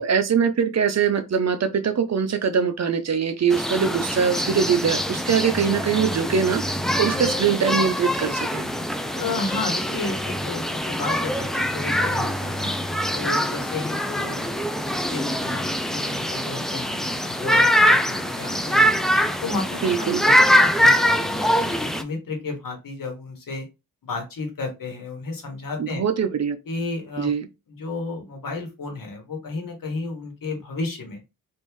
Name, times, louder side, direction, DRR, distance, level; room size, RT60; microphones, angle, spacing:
voice 1, 0.0-6.6 7.0-8.7 19.8-20.2 25.8-26.6 27.2-27.5, right 6 dB, 45° right, 0.6 m, -22 dB
sound 1, 3.5-22.0, equal, ahead, 0.3 m, -23 dB
voice 2, 6.9-7.2 9.1-12.7 13.1-18.9 19.4-23.7 24.0-26.0 26.7-27.3 27.7-31.2, left 3 dB, 65° left, 1.3 m, -33 dB
3.4 x 2.6 x 3.1 m
wide cardioid pair, 90°, 36 cm